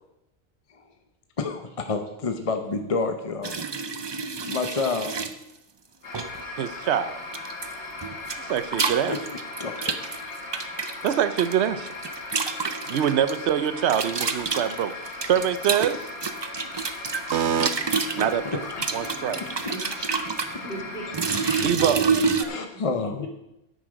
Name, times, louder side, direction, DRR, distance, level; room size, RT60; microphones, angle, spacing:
voice 1, 1.4-3.5 4.4-5.1 9.1-9.2 9.6-9.9 18.2-18.8 20.5-20.7 22.5-23.3, left 4 dB, 35° left, 6 dB, 0.7 m, -29 dB
sound 1, 3.4-5.3 6.1-6.4 7.3-7.7 8.0-11.5 11.9-13.3 13.9-18.3 18.7-20.5 21.1-22.4, right 5 dB, 35° right, 0.4 m, -28 dB
sound 2, 6.0-21.6, left 2 dB, 85° left, 2.3 m, -38 dB
voice 2, 6.6-7.2 8.4-9.1 11.0-11.9 12.9-16.1 17.3-17.7 18.2-18.7 18.9-19.4 21.6-22.1, right 9 dB, 75° right, 14 dB, 0.9 m, -24 dB
sound 3, 17.4-19.7 20.3-22.5, left 1 dB, 20° right, 5.1 m, -45 dB
voice 3, 18.7-19.1 19.7-21.1 21.4-22.9 23.2-23.3, equal, 60° left, 1 dB, 2.2 m, -38 dB
10.5 x 8.2 x 5.0 m, 0.88 s
omnidirectional pair, 1.1 m